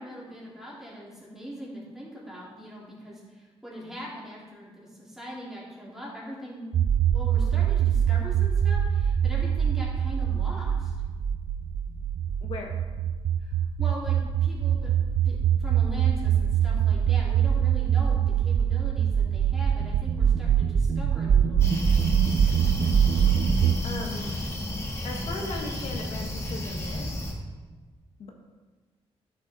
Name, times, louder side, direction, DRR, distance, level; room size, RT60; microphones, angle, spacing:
voice 1, 0.0-6.6 7.1-10.9 13.4-15.0 15.2-21.8, equal, 5° right, -6 dB, 3.0 m, -41 dB
sound 1, 6.7-23.8, right 8 dB, 50° right, 0.5 m, -24 dB
voice 2, 12.4-12.8 23.8-24.3 25.0-27.1 28.2-28.3, left 3 dB, 65° left, 1 dB, 1.4 m, -37 dB
sound 2, 21.6-27.3, equal, 25° left, 1.6 m, -32 dB
14.0 x 6.6 x 4.3 m, 1.4 s
wide cardioid pair, 170°, 11 cm